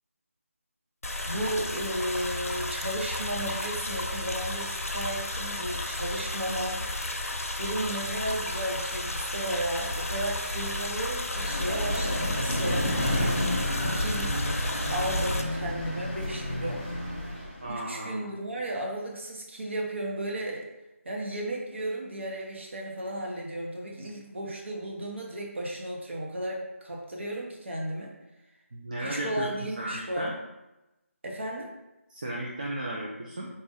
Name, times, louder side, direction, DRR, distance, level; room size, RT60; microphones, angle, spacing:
sound 1, 1.0-15.4, left 2 dB, 75° left, 0.6 m, -32 dB
voice 1, 1.3-6.8 7.6-13.2 13.9-14.4 14.9-16.9 17.3-17.4 17.7-20.7 21.0-28.1 29.0-30.3 31.2-31.7, right 1 dB, 55° right, -1 dB, 0.9 m, -34 dB
Vehicle, 11.3-17.7, equal, 5° left, 1.1 m, -31 dB
voice 2, 17.6-18.3 28.7-29.5 29.8-30.3 32.1-33.5, right 1 dB, 35° right, -3 dB, 0.4 m, -34 dB
4.1 x 2.4 x 3.8 m, 0.98 s
figure-of-eight pair, 170°, 8 cm